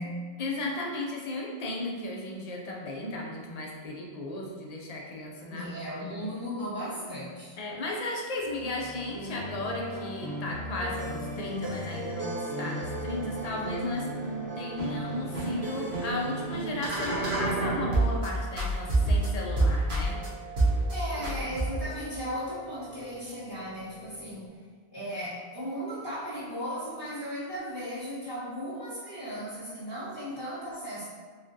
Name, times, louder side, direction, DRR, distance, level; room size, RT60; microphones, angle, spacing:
voice 1, 0.4-5.7 6.0-6.2 7.6-14.1 14.6-20.2 21.1-21.3 21.5-21.6, left 2 dB, 45° left, -1 dB, 0.6 m, -35 dB
voice 2, 5.5-7.6 20.9-24.6 24.9-31.0, equal, 10° right, -12 dB, 1.0 m, -36 dB
sound 1, 8.5-18.3 18.6-20.3 20.6-20.9 21.2-22.0, right 2 dB, 75° right, 1.2 m, -30 dB
sound 2, 13.1-24.5, right 4 dB, 25° left, 1.0 m, -47 dB
3.5 x 3.2 x 2.6 m, 1.5 s
omnidirectional pair, 1.1 m